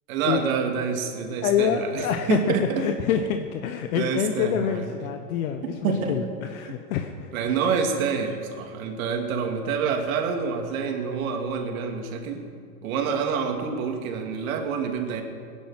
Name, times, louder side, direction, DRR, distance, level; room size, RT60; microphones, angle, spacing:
voice 1, 0.1-2.9 3.9-4.9 5.6-6.2 6.7-6.8 7.3-12.4 12.8-15.2, right 6 dB, 65° right, 3 dB, 2.7 m, -27 dB
voice 2, 1.4-7.3, left 8 dB, 65° left, 6 dB, 1.2 m, -26 dB
17.5 x 10.5 x 7.8 m, 2.3 s
supercardioid pair, 135°, 44 cm